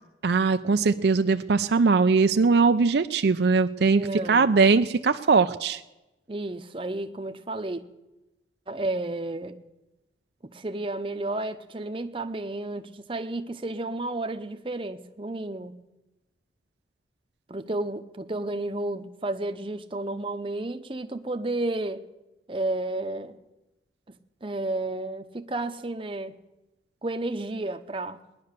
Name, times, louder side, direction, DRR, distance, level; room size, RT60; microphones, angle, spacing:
voice 1, 0.2-4.0 4.3-5.8, right 4 dB, 60° right, 9 dB, 0.5 m, -21 dB
voice 2, 3.9-4.6 6.3-7.8 8.7-9.6 10.4-15.8 17.5-22.0 22.5-23.4 24.4-26.4 27.0-28.2, right 2 dB, 30° right, 8 dB, 0.7 m, -32 dB
19.5 x 10.5 x 6.7 m, 1.0 s
head